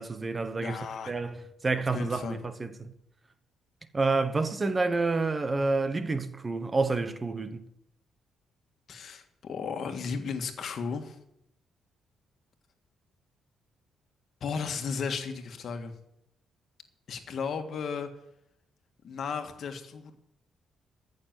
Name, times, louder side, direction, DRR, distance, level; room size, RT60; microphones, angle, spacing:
voice 1, 0.0-0.8 1.1-2.9 3.9-7.7, right 3 dB, 30° right, 1.1 m, -29 dB
voice 2, 0.6-1.1 1.9-2.4 8.9-11.2 14.4-15.9 17.1-18.1 19.0-20.3, left 5 dB, 60° left, 1.7 m, -34 dB
14.5 x 6.7 x 7.5 m
cardioid pair, 90°, 0 cm